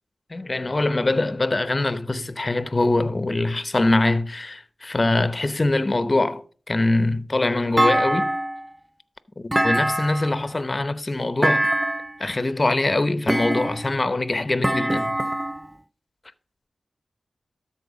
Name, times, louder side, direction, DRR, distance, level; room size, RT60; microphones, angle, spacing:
voice 1, 0.3-8.3 9.4-11.6 12.2-15.1, left 2 dB, 40° left, 0.8 m, -23 dB
Thump thud, 7.8-8.7 9.5-10.4 11.4-12.2 13.3-14.0 14.6-15.7, right 1 dB, 15° right, 0.4 m, -23 dB
13.0 x 4.4 x 6.3 m
cardioid pair, 45°, 0 cm